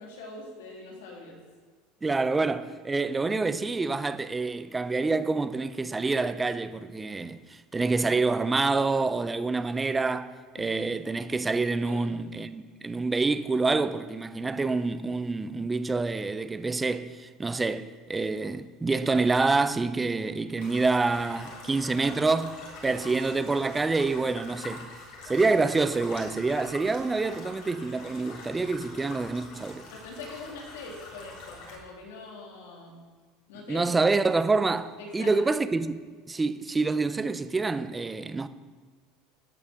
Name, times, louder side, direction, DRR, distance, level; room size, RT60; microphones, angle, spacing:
voice 1, 0.0-1.4 10.6-10.7 11.8-12.1 29.9-33.0 33.5-33.9 35.0-35.3, left 3 dB, 90° left, 2.6 m, -43 dB
voice 2, 2.0-24.9 25.2-29.9 33.7-38.5, right 3 dB, 15° right, 0.5 m, -27 dB
sound 1, 20.6-31.8, left 3 dB, 70° left, 3.3 m, -44 dB
12.5 x 5.6 x 6.2 m
supercardioid pair, 115°, 0 cm